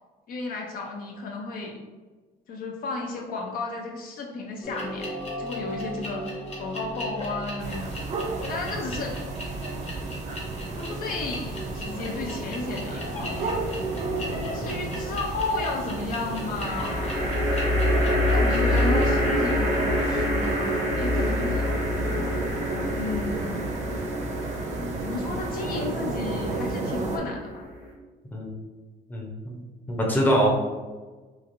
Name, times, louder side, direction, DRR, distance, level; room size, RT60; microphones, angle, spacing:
voice 1, 0.3-1.8 2.5-5.1 5.4-6.3 6.6-7.9 8.5-9.3 10.9-13.5 14.5-17.3 18.3-21.7 22.9-23.6 25.0-27.6, left 3 dB, 60° left, 0 dB, 0.4 m, -33 dB
sound 1, 4.6-21.9, equal, 40° left, 0.9 m, -36 dB
sound 2, 7.6-27.2, right 2 dB, 45° right, 0.4 m, -33 dB
sound 3, 13.4-14.1 16.5-27.9, left 1 dB, 70° right, 1.0 m, -27 dB
voice 2, 29.1-29.6 29.9-30.5, right 1 dB, 10° left, -2 dB, 0.6 m, -23 dB
3.0 x 2.4 x 2.5 m, 1.3 s
cardioid pair, 110°, 17 cm